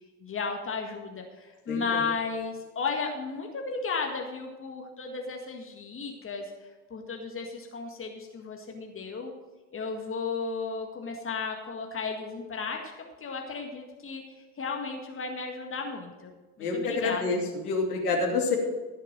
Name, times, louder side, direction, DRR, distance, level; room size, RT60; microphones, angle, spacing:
voice 1, 0.2-6.5 6.9-9.3 9.7-14.2 14.6-16.3 16.6-17.4, left 4 dB, 30° left, 2 dB, 1.9 m, -34 dB
voice 2, 1.7-2.0 16.6-18.6, left 3 dB, 75° left, 0 dB, 2.8 m, -28 dB
15.5 x 6.6 x 6.4 m, 1.3 s
figure-of-eight pair, 70°, 45 cm